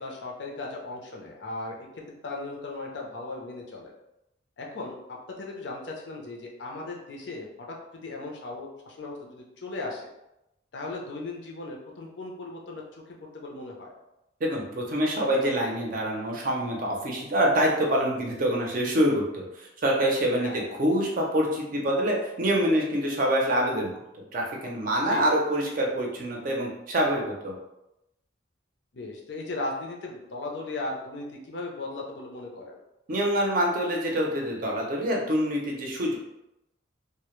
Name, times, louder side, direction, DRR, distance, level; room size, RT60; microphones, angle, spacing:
voice 1, 0.0-3.9 4.6-10.1 10.7-12.8 13.1-13.9 20.4-20.7 25.0-25.3 28.9-32.8, left 2 dB, 65° left, -1 dB, 0.5 m, -37 dB
voice 2, 14.4-24.0 24.3-27.6 33.1-36.2, equal, 45° right, -1 dB, 0.5 m, -26 dB
2.1 x 2.0 x 3.0 m, 0.88 s
head